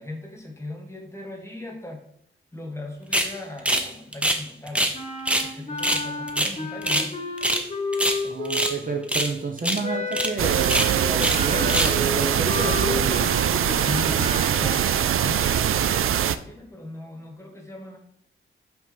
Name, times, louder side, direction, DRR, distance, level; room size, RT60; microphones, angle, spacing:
voice 1, 0.0-2.0 2.5-4.9 5.4-7.3 13.8-18.0, left 2 dB, 15° left, 2 dB, 1.4 m, -38 dB
sound 1, 3.1-3.3 3.7-3.9 4.1-5.0 5.3-5.5 5.8-7.1 7.4-7.7 7.9-8.8 9.1-9.3 9.6-9.8 10.1-10.3 10.6-11.4 11.7-12.0, right 1 dB, 5° right, 0.7 m, -24 dB
Wind instrument woodwind instrument, 4.9-9.1 9.8-15.2, left 2 dB, 30° left, 1.1 m, -31 dB
voice 2, 8.2-13.3, right 4 dB, 40° right, 3 dB, 0.8 m, -30 dB
sound 2, 10.4-16.4, right 9 dB, 85° right, 0.4 m, -22 dB
5.6 x 3.6 x 5.9 m, 0.71 s
wide cardioid pair, 135°, 21 cm